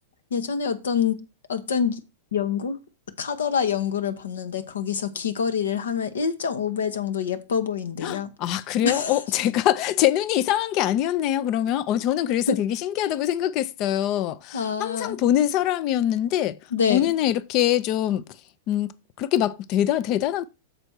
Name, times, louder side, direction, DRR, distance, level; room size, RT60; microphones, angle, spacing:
voice 1, 0.3-1.2 1.5-2.0 2.3-2.8 3.2-8.3 8.8-9.2 12.5-12.6 14.5-15.2 16.7-17.1, left 7 dB, 75° left, 1.0 m, -26 dB
voice 2, 8.0-16.6 16.9-18.2 18.7-18.9 19.2-20.5, left 12 dB, 45° left, 0.6 m, -23 dB
6.7 x 4.4 x 6.2 m
hypercardioid pair, 100°, 0 cm